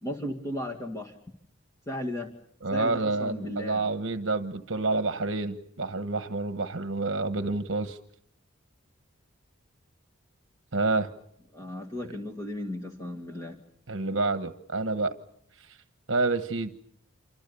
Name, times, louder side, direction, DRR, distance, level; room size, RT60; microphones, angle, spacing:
voice 1, 0.0-1.1 1.9-2.3 2.7-3.8 11.5-13.6, left 1 dB, 15° left, 1 dB, 2.1 m, -35 dB
voice 2, 2.6-8.0 10.7-11.1 13.9-15.1 15.6-15.8 16.1-16.7, right 3 dB, 60° right, 9 dB, 1.2 m, -28 dB
28.0 x 25.0 x 7.0 m, 0.71 s
head